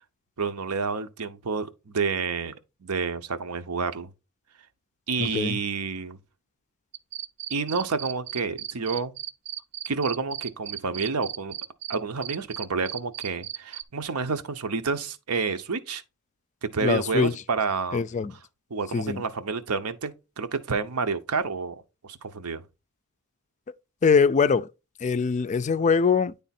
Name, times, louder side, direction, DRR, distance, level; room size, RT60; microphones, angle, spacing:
voice 1, 0.4-2.5 2.8-4.1 5.1-6.2 7.5-9.1 9.9-11.6 11.9-16.0 16.6-18.0 18.7-22.6, right 4 dB, 80° right, 0.8 m, -29 dB
voice 2, 5.2-5.6 16.8-17.3 17.9-18.3 18.9-19.2 24.0-24.7 25.0-26.3, left 5 dB, 35° left, 0.3 m, -22 dB
sound 1, 6.9-12.0 12.2-13.8, right 11 dB, 50° right, 0.5 m, -35 dB
10.0 x 3.5 x 4.2 m
head